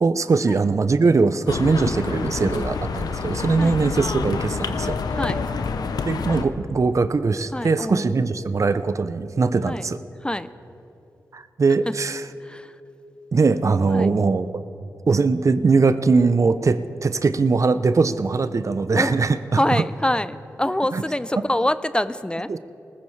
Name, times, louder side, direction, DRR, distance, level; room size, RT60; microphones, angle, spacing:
voice 1, 0.0-5.0 6.1-10.0 11.3-12.2 13.3-14.5 15.1-19.8 20.9-21.0 22.5-22.6, right 4 dB, 50° right, 12 dB, 0.6 m, -21 dB
sound 1, 1.5-6.4, left 5 dB, 80° left, 0.7 m, -27 dB
voice 2, 2.1-2.7 3.6-3.8 5.1-5.5 7.5-8.3 9.6-9.9 10.2-10.5 11.9-12.0 12.4-12.8 13.9-14.1 18.9-19.1 19.5-22.5, left 1 dB, 15° left, 14 dB, 0.4 m, -26 dB
19.5 x 14.5 x 3.2 m, 2.8 s
cardioid pair, 45°, 7 cm